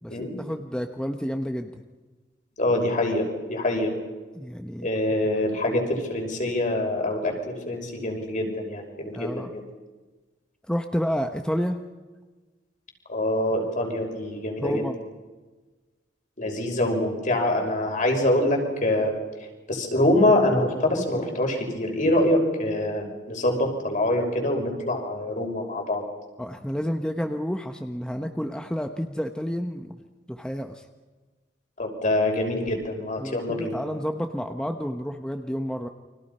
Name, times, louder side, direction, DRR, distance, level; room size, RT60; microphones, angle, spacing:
voice 1, 0.0-1.8 4.3-4.9 5.7-5.8 9.1-9.5 10.7-11.8 14.6-15.0 26.4-30.0 30.3-30.9 33.2-35.9, equal, 5° left, 5 dB, 1.1 m, -30 dB
voice 2, 2.6-3.9 4.8-9.6 13.1-14.8 16.4-19.1 19.7-26.0 31.8-33.8, left 1 dB, 45° left, 2 dB, 6.0 m, -25 dB
30.0 x 25.0 x 5.6 m, 1.3 s
head